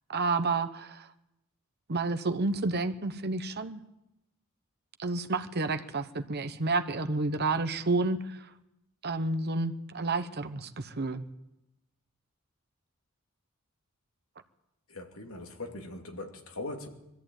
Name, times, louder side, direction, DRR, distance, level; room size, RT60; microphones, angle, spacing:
voice 1, 0.1-1.1 1.9-3.8 5.0-8.5 9.0-11.3, right 3 dB, 50° right, 1.0 m, -30 dB
voice 2, 14.9-16.9, left 2 dB, 90° left, 2.6 m, -40 dB
22.0 x 14.0 x 9.1 m
head